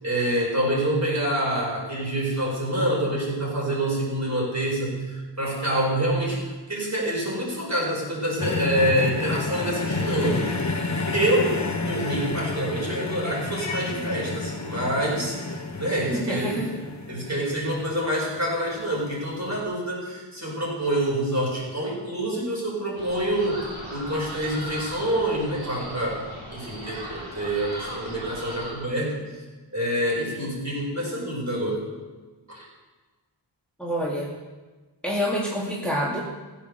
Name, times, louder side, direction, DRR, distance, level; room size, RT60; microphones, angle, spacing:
voice 1, 0.0-10.6 11.1-11.6 11.9-15.3 15.8-26.2 26.5-29.2 29.7-31.8 32.5-32.7, right 1 dB, 35° right, -4 dB, 5.3 m, -26 dB
sound 1, 8.4-18.6 19.5-19.6, left 3 dB, 35° left, 1.1 m, -30 dB
voice 2, 16.1-16.7 33.8-34.4 35.0-36.2, equal, ahead, -4 dB, 2.2 m, -27 dB
sound 2, 23.0-28.7, equal, 85° right, 4.8 m, -38 dB
15.5 x 8.6 x 6.7 m, 1.3 s
wide cardioid pair, 65°, 47 cm